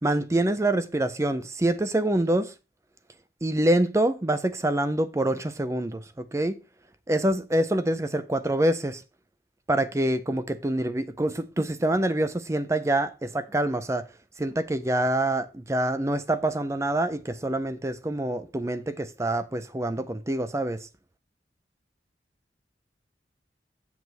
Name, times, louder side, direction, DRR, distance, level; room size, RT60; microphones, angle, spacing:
voice 1, 0.0-2.5 3.4-6.6 7.1-9.0 9.7-14.1 14.4-20.9, right 1 dB, 15° right, 0.5 m, -26 dB
7.8 x 7.1 x 4.0 m
head